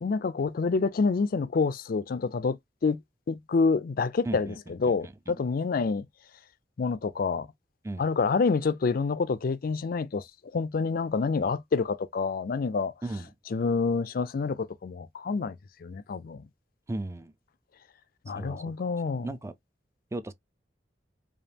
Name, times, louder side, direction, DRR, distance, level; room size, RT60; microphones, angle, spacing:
voice 1, 0.0-3.0 3.3-4.5 4.8-6.1 6.8-7.5 8.0-10.2 10.5-12.9 13.5-16.5 18.3-19.3, left 4 dB, 55° left, 0.4 m, -27 dB
voice 2, 4.3-4.6 4.9-5.4 7.8-8.0 13.0-13.3 16.9-17.3 18.3-18.9 19.2-19.5 20.1-20.3, right 2 dB, 15° right, 0.4 m, -36 dB
5.1 x 2.4 x 2.8 m
head